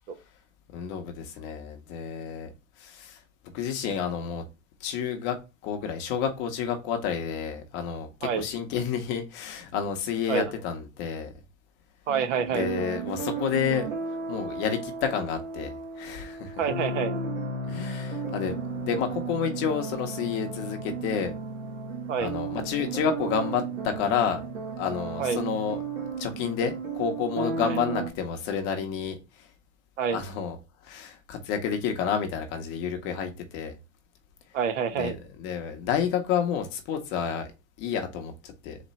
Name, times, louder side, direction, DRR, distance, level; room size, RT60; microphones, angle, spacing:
voice 1, 0.7-2.5 2.8-3.2 3.5-4.4 4.8-5.4 5.6-11.3 12.5-13.9 14.3-16.6 17.7-21.3 22.2-24.4 24.8-25.8 26.2-29.5 30.1-30.6 30.8-33.8 35.0-37.5 37.8-38.8, left 7 dB, 30° left, 0.7 m, -30 dB
voice 2, 12.1-12.7 16.6-17.2 22.1-22.3 25.2-25.4 27.6-27.8 30.0-30.2 34.5-35.2, right 6 dB, 65° right, 1.0 m, -27 dB
sound 1, 12.1-28.1, right 4 dB, 85° right, 1.7 m, -34 dB
4.1 x 2.9 x 4.0 m
supercardioid pair, 155°, 39 cm